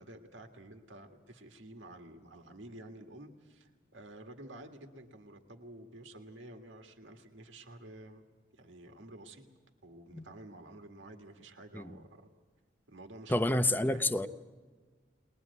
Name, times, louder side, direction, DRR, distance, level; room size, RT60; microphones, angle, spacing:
voice 1, 0.0-8.2 8.5-9.5 9.8-12.3 12.9-14.1, right 1 dB, 85° right, 1.8 m, -51 dB
voice 2, 13.3-14.3, left 1 dB, 10° left, 0.6 m, -29 dB
21.5 x 21.0 x 8.2 m
head